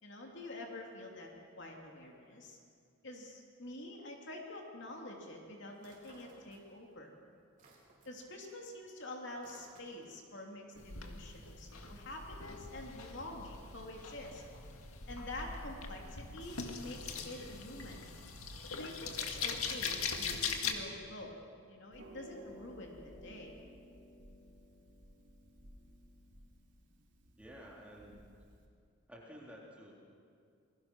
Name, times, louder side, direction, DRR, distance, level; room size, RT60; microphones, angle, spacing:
voice 1, 0.0-1.3 1.6-2.6 3.0-7.1 8.0-14.4 15.1-18.0 18.7-21.3 21.7-23.6, left 1 dB, 55° left, 0 dB, 3.0 m, -47 dB
sound 1, 5.8-7.0 7.3-10.2, right 2 dB, 40° right, 4.2 m, -62 dB
sound 2, 10.8-20.7, left 5 dB, 90° left, 2.0 m, -41 dB
Harp, 21.9-28.7, equal, 55° right, 3.3 m, -56 dB
voice 2, 27.4-28.2 29.1-29.9, equal, 5° right, -4 dB, 3.6 m, -52 dB
28.0 x 20.5 x 6.1 m, 2.3 s
head